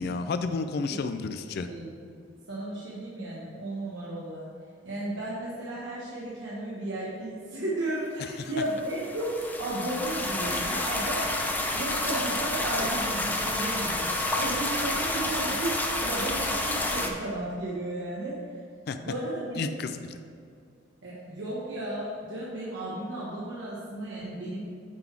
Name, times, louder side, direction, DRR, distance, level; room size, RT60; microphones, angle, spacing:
voice 1, 0.0-1.7 18.9-19.0 19.6-20.0, left 4 dB, 60° left, 9 dB, 0.4 m, -31 dB
voice 2, 1.7-2.2 2.5-4.4 4.8-11.3 11.7-18.4 19.0-19.8 21.0-24.7, right 1 dB, 90° right, -7 dB, 1.3 m, -34 dB
sound 1, 8.7-17.1, left 1 dB, 10° left, 0.6 m, -29 dB
8.8 x 4.0 x 4.6 m, 2.3 s
head